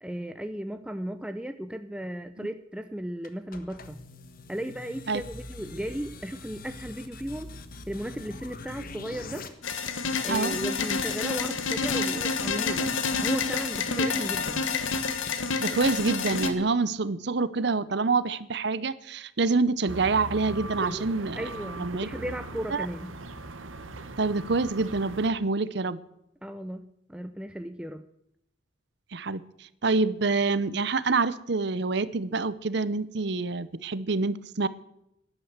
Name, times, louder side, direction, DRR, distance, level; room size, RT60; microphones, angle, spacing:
voice 1, 0.0-4.0 4.5-7.5 7.9-9.5 10.2-12.9 13.2-14.7 20.8-21.0 21.4-23.1 26.4-28.0, equal, 5° right, 9 dB, 0.5 m, -36 dB
sound 1, 3.2-9.5, left 2 dB, 45° left, 1.2 m, -43 dB
sound 2, 9.6-16.5, left 4 dB, 85° left, 1.5 m, -28 dB
voice 2, 15.6-21.5 21.8-22.1 22.7-22.9 24.2-26.0 29.1-29.4 29.8-34.7, right 3 dB, 60° right, 16 dB, 0.7 m, -26 dB
sound 3, 19.9-25.3, right 2 dB, 85° right, 1.2 m, -40 dB
12.5 x 11.0 x 8.0 m, 0.80 s
head